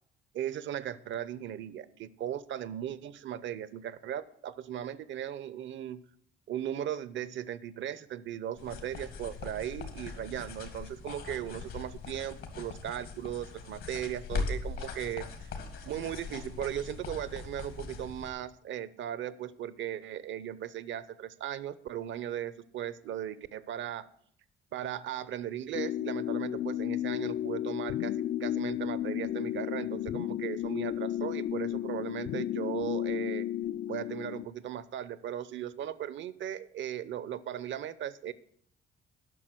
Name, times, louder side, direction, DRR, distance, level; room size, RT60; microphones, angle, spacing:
voice 1, 0.3-6.0 6.5-15.3 15.9-24.1 24.7-28.1 28.4-33.5 33.9-38.3, right 10 dB, 70° right, 17 dB, 0.7 m, -37 dB
Sound Walk - Writing, 8.6-18.3, left 4 dB, 80° left, 2.1 m, -40 dB
sound 1, 25.7-34.4, left 12 dB, 60° left, 0.4 m, -33 dB
11.0 x 6.1 x 7.6 m, 0.64 s
cardioid pair, 90°, 20 cm